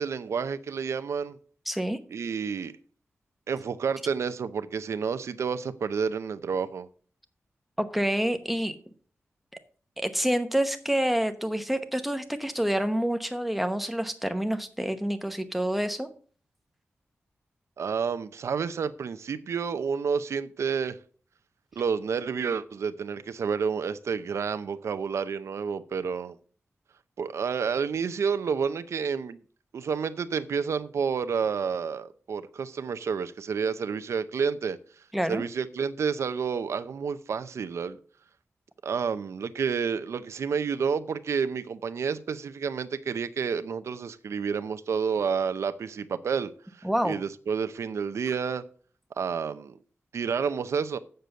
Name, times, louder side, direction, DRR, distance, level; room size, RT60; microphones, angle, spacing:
voice 1, 0.0-1.4 2.1-2.7 3.5-6.9 17.8-21.0 21.7-26.4 27.2-29.4 29.7-34.8 35.3-38.0 38.8-46.5 47.0-48.7 49.2-49.8 50.1-51.0, right 6 dB, 90° right, 0.6 m, -29 dB
voice 2, 1.7-2.0 7.8-8.8 10.0-16.1 35.1-35.4 46.8-47.2, equal, ahead, 0.9 m, -27 dB
7.7 x 6.7 x 6.8 m
wide cardioid pair, 150°, 5 cm